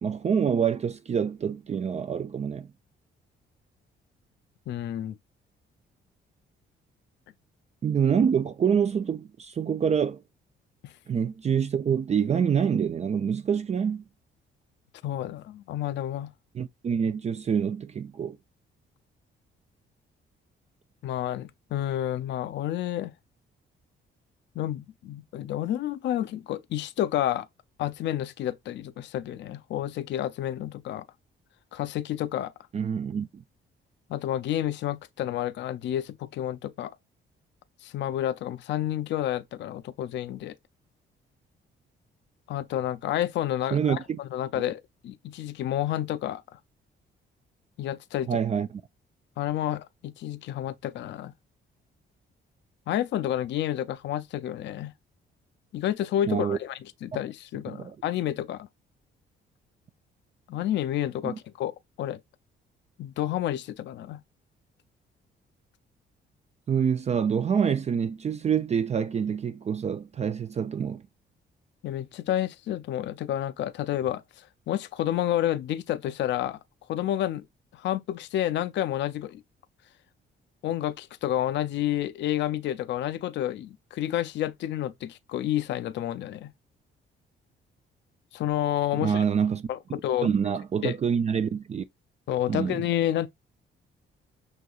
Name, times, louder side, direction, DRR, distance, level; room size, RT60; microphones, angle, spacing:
voice 1, 0.0-2.7 7.8-10.2 11.1-14.0 16.5-18.4 32.7-33.4 43.7-44.2 48.3-48.7 56.3-56.6 57.7-58.0 61.2-61.4 66.7-71.0 88.9-89.7 90.2-91.8 92.5-92.8, right 7 dB, 35° right, 0.4 m, -26 dB
voice 2, 4.7-5.2 10.8-10.9 15.0-16.3 21.0-23.1 24.6-27.5 27.8-31.0 31.7-32.5 34.1-36.9 37.8-40.6 42.5-46.6 47.8-48.4 49.4-51.3 52.9-54.9 55.7-58.7 60.5-61.7 62.0-62.2 63.0-64.2 71.8-76.6 76.9-77.5 77.7-79.4 80.6-86.5 88.3-89.2 89.7-90.3 90.8-90.9 92.3-93.3, left 12 dB, 65° left, 0.4 m, -30 dB
6.2 x 2.8 x 2.3 m
cardioid pair, 90°, 20 cm